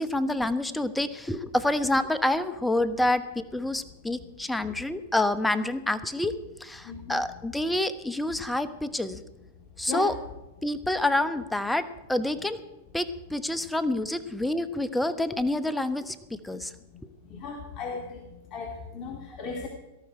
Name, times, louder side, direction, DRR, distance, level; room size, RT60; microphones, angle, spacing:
voice 1, 0.0-6.3 6.6-9.2 9.8-10.1 10.6-12.6 12.9-16.7, left 1 dB, 5° left, 12 dB, 0.9 m, -27 dB
voice 2, 6.9-7.2 9.9-10.1 17.3-18.2 18.5-19.7, left 5 dB, 35° left, 1 dB, 2.2 m, -36 dB
18.0 x 13.0 x 4.8 m, 1.0 s
hypercardioid pair, 115°, 0 cm